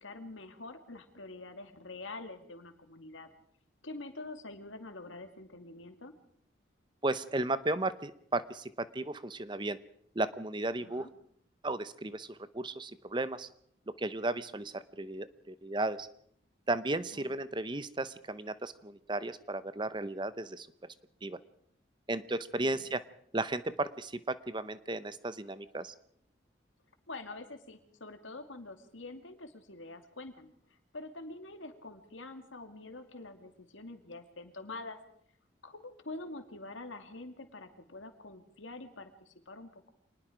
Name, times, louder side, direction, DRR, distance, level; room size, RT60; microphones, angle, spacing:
voice 1, 0.0-3.3 3.8-6.1 10.8-11.1 17.1-17.3 22.6-22.8 27.1-30.5 30.9-35.0 35.6-39.9, left 2 dB, 85° left, 7 dB, 2.5 m, -46 dB
voice 2, 7.0-9.8 10.2-11.1 11.6-13.5 14.0-16.1 16.7-20.7 21.2-21.4 22.1-23.0 23.3-25.9, right 2 dB, 25° right, 14 dB, 0.8 m, -34 dB
26.0 x 20.0 x 5.1 m, 0.66 s
head